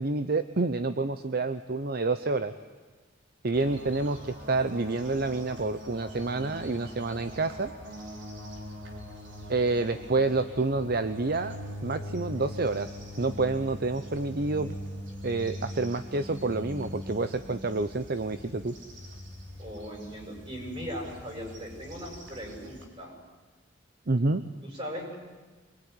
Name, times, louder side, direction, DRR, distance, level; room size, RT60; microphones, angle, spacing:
voice 1, 0.0-2.5 3.4-7.7 9.5-11.6 11.8-14.8 15.2-18.7 24.1-24.4, right 3 dB, 55° right, 11 dB, 0.8 m, -28 dB
sound 1, 3.5-22.9, equal, 70° right, 4.5 m, -42 dB
voice 2, 19.6-23.1 24.6-25.2, equal, 30° right, 0 dB, 8.0 m, -39 dB
25.5 x 21.5 x 9.9 m, 1.3 s
head